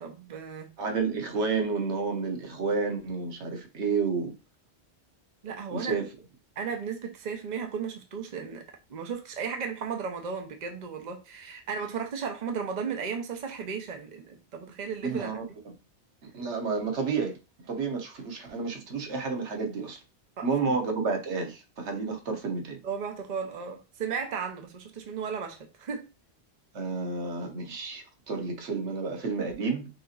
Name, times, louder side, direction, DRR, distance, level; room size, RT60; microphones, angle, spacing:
voice 1, 0.0-0.7 5.4-6.0 6.6-8.6 8.9-15.4 20.4-20.8 22.8-26.1, right 6 dB, 45° right, 0.8 m, -35 dB
voice 2, 0.8-4.3 5.7-6.1 15.0-15.4 16.2-17.4 17.7-20.0 20.4-22.8 26.7-29.9, right 4 dB, 90° right, 1.3 m, -30 dB
6.0 x 2.9 x 2.4 m
omnidirectional pair, 1.1 m